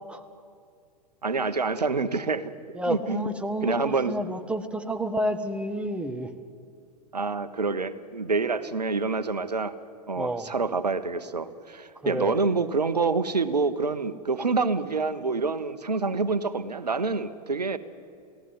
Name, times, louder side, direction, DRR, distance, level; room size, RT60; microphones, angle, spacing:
voice 1, 1.2-2.5 2.9-3.2 3.6-4.1 7.1-9.7 10.1-17.8, right 4 dB, 85° right, 13 dB, 1.1 m, -27 dB
voice 2, 2.7-6.3 10.2-10.5 12.0-12.4, right 1 dB, 5° right, 7 dB, 1.5 m, -30 dB
28.0 x 17.0 x 9.5 m, 2.4 s
figure-of-eight pair, 100°, 20 cm